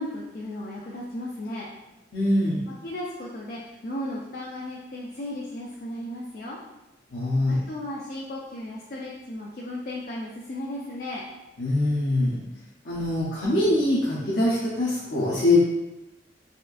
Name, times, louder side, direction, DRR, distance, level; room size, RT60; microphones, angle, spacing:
voice 1, 0.0-1.7 2.8-6.6 7.5-11.2, left 1 dB, 50° left, -4 dB, 0.4 m, -35 dB
voice 2, 2.1-2.7 7.1-7.6 11.6-12.4 12.8-15.6, left 2 dB, 80° left, -8 dB, 0.7 m, -23 dB
4.3 x 2.4 x 2.5 m, 1.0 s
head